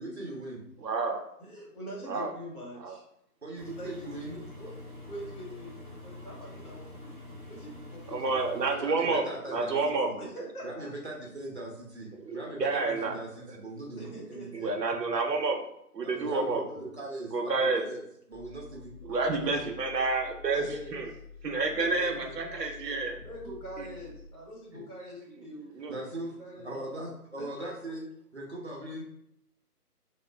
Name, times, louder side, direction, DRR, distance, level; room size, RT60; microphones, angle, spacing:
voice 1, 0.0-0.6 3.4-4.4 8.7-10.2 10.6-14.7 16.0-18.9 19.4-19.5 23.2-23.3 24.7-24.8 25.9-26.4 26.6-28.1 28.3-29.0, right 1 dB, 45° right, -2 dB, 0.6 m, -40 dB
voice 2, 0.8-1.2 2.0-2.3 2.8-3.0 8.1-10.1 12.2-13.1 14.5-15.6 15.9-16.6 17.3-17.8 19.0-21.1 21.4-23.2 23.8-23.9 25.4-25.5 25.7-26.0, right 3 dB, 85° right, 3 dB, 0.7 m, -29 dB
voice 3, 1.4-3.0 3.8-4.7 5.1-5.7 6.0-7.2 7.5-8.6 10.2-10.9 14.0-14.7 16.1-16.9 20.2-21.0 21.8-22.3 23.2-25.7 26.4-27.1 27.4-27.7, equal, 65° left, -2 dB, 1.2 m, -44 dB
Engine, 3.5-8.7, left 2 dB, 30° left, 0.9 m, -46 dB
sound 1, 18.3-24.2, left 5 dB, 15° left, 1.1 m, -49 dB
2.3 x 2.1 x 3.2 m, 0.75 s
figure-of-eight pair, 155°, 48 cm